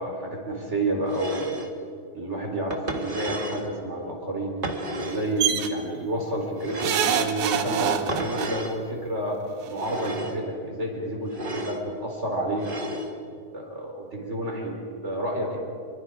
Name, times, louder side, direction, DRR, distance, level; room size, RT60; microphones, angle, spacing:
voice 1, 0.0-1.5 2.1-4.6 5.0-9.4 9.7-12.7 13.1-14.8 15.0-15.6, right 1 dB, 20° right, 0 dB, 4.1 m, -30 dB
sound 1, 1.1-1.7 2.7-3.7 4.6-5.3 6.6-7.3 8.1-8.8 9.7-10.4 11.3-11.8 12.6-13.1, right 2 dB, 40° right, 0.7 m, -33 dB
sound 2, 5.4-5.7 6.8-8.5 9.7-9.8 10.1-10.2, right 9 dB, 70° right, 2.3 m, -25 dB
26.0 x 23.5 x 4.9 m, 2.4 s
omnidirectional pair, 3.5 m